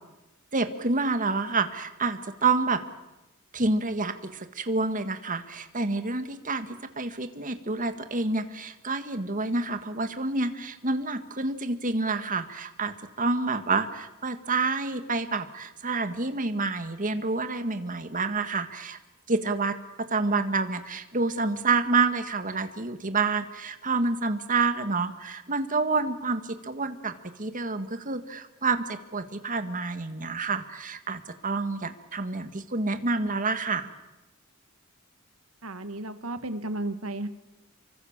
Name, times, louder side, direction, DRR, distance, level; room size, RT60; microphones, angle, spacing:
voice 1, 0.5-2.8 3.5-19.0 19.3-33.9, right 3 dB, 40° right, 9 dB, 1.8 m, -28 dB
voice 2, 35.6-37.3, right 1 dB, 75° right, 10 dB, 1.7 m, -33 dB
29.0 x 24.0 x 7.4 m, 0.98 s
head